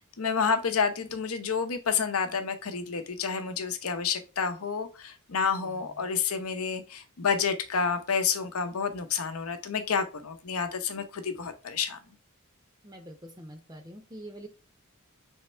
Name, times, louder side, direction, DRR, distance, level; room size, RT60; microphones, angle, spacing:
voice 1, 0.2-12.0, left 6 dB, 75° left, 8 dB, 0.7 m, -29 dB
voice 2, 5.5-5.8 12.8-14.5, right 1 dB, 20° right, 5 dB, 0.6 m, -45 dB
3.6 x 3.1 x 4.3 m, 0.31 s
head